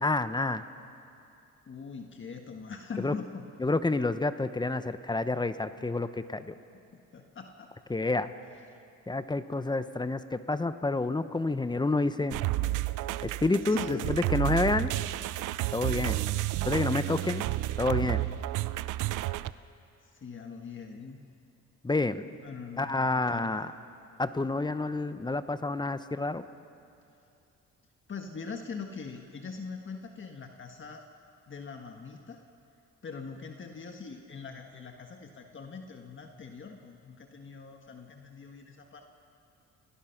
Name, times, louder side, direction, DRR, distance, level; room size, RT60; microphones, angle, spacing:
voice 1, 0.0-0.6 3.0-3.1 3.6-6.5 7.9-8.3 9.1-12.4 13.2-14.9 15.7-16.2 16.7-17.4 17.8-18.2 21.8-22.3 22.8-23.7 24.2-26.4, left 2 dB, 15° left, 12 dB, 0.9 m, -29 dB
voice 2, 1.7-3.4 6.7-7.7 8.7-8.8 13.7-14.3 16.9-17.4 20.0-21.2 22.4-23.7 28.1-31.0 31.5-32.4 33.0-39.0, left 5 dB, 40° left, 3 dB, 1.6 m, -42 dB
sound 1, 12.3-19.5, right 16 dB, 90° right, 0.6 m, -31 dB
30.0 x 17.5 x 5.9 m, 2.6 s
cardioid pair, 90°, 30 cm